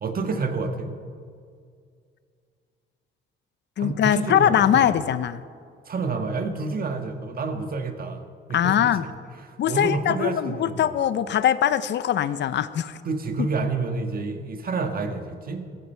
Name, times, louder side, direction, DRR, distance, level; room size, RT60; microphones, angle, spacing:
voice 1, 0.0-0.9 3.8-4.9 5.8-8.2 8.5-8.9 9.4-10.9 13.0-15.6, right 4 dB, 45° right, 6 dB, 1.6 m, -29 dB
voice 2, 3.8-5.4 8.5-9.0 9.6-13.0, left 10 dB, 65° left, 14 dB, 0.6 m, -22 dB
15.0 x 15.0 x 4.6 m, 2.2 s
cardioid pair, 90°, 20 cm